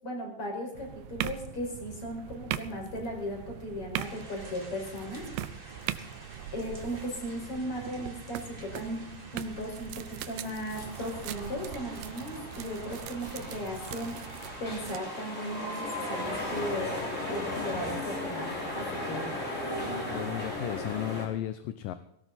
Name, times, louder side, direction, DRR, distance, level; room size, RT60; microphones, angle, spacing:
voice 1, 0.0-5.2 5.9-6.1 6.5-9.0 9.3-17.0 17.3-19.3, equal, 40° left, 1 dB, 6.0 m, -37 dB
sound 1, 0.7-15.0, right 12 dB, 75° right, 2.4 m, -41 dB
sound 2, 3.9-17.9, right 2 dB, 15° right, 2.5 m, -50 dB
sound 3, 10.7-21.3, left 1 dB, 20° left, 4.8 m, -36 dB
voice 2, 20.1-21.9, left 12 dB, 75° left, 11 dB, 2.4 m, -34 dB
18.5 x 18.0 x 4.2 m, 0.77 s
omnidirectional pair, 4.1 m